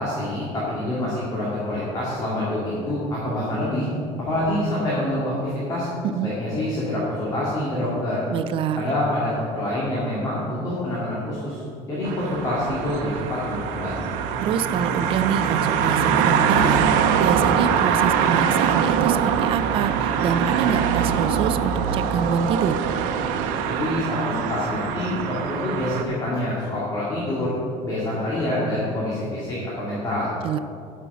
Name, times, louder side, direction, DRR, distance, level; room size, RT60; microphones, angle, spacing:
voice 1, 0.0-3.9 4.2-5.9 6.2-8.2 8.7-11.6 11.9-14.1 23.7-27.5 27.8-30.3, left 1 dB, 25° left, -8 dB, 2.4 m, -26 dB
voice 2, 8.3-8.9 14.4-22.8 30.4-30.6, right 7 dB, 40° right, 12 dB, 0.4 m, -26 dB
sound 1, 12.0-26.0, right 7 dB, 90° right, 0.8 m, -23 dB
11.0 x 6.2 x 6.8 m, 2.5 s
cardioid pair, 175°, 14 cm